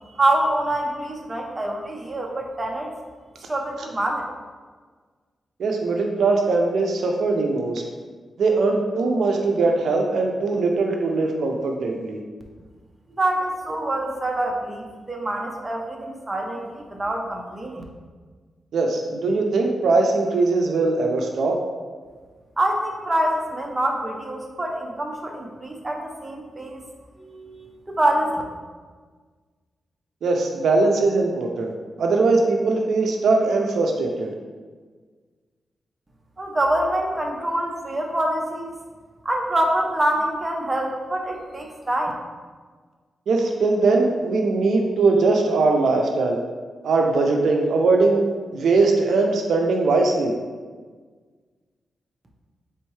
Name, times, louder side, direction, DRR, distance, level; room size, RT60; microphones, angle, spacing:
voice 1, 0.1-2.9 3.5-4.2 13.2-17.8 22.6-26.8 27.2-28.3 36.4-38.8 39.2-42.1, right 1 dB, 25° right, 1 dB, 0.7 m, -25 dB
voice 2, 5.6-7.8 8.4-12.2 18.7-21.6 30.2-31.7 32.0-34.3 43.3-46.4 46.8-50.3, right 3 dB, 80° right, 2 dB, 0.4 m, -21 dB
4.3 x 3.5 x 3.1 m, 1.5 s
cardioid pair, 80°, 0 cm